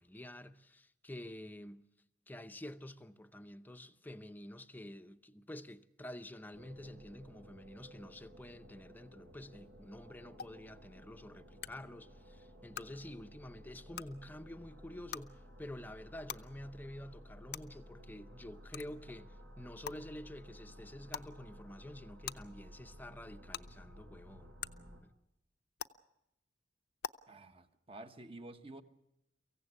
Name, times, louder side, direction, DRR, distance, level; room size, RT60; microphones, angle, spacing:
voice 1, 0.0-1.9 2.3-24.5 25.0-25.1, left 1 dB, 10° left, 0.7 m, -49 dB
sound 1, 6.5-25.0, equal, 80° right, 6.4 m, -55 dB
sound 2, 10.4-10.5 11.6-11.7 12.7-12.8 13.9-14.0 15.1-15.2 16.3-16.4 17.5-17.6 18.7-18.8 19.8-19.9 21.1-21.3 22.2-22.3 23.5-23.6 24.6-24.7 25.8-25.9 27.0-27.1, left 8 dB, 65° left, 0.7 m, -40 dB
voice 2, 27.3-28.8, right 2 dB, 30° right, 1.2 m, -50 dB
24.0 x 16.0 x 8.3 m
head